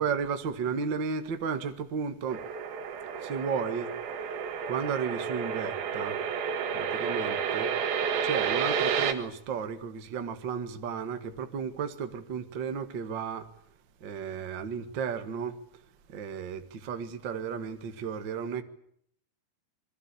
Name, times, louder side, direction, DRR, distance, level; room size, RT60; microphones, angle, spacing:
voice 1, 0.0-2.4 3.2-3.9 4.7-6.2 6.7-7.7 8.2-13.5 14.0-15.5 16.1-18.6, right 6 dB, 40° right, 1.8 m, -33 dB
sound 1, 2.3-9.1, right 7 dB, 75° right, 3.8 m, -31 dB
28.0 x 23.0 x 8.5 m
omnidirectional pair, 4.4 m